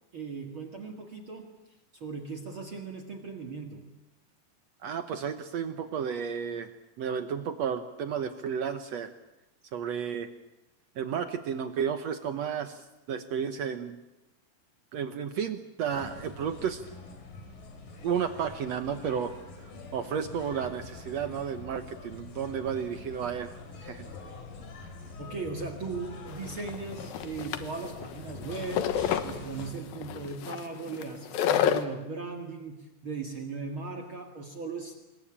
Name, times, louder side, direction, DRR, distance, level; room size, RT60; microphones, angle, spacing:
voice 1, 0.1-1.6 1.9-3.9 25.2-35.0, right 4 dB, 45° right, 4 dB, 2.2 m, -38 dB
voice 2, 4.8-6.7 7.0-9.1 9.7-10.3 11.0-14.0 14.9-16.8 18.0-19.3 19.9-23.5 23.8-24.1, right 7 dB, 65° right, 9 dB, 1.8 m, -32 dB
sound 1, 15.9-29.7, left 3 dB, 70° left, 5.2 m, -45 dB
sound 2, 20.2-30.2, left 2 dB, 55° left, 6.7 m, -51 dB
sound 3, 26.3-31.8, left 9 dB, 85° left, 3.1 m, -30 dB
26.5 x 21.5 x 8.8 m, 0.97 s
omnidirectional pair, 4.1 m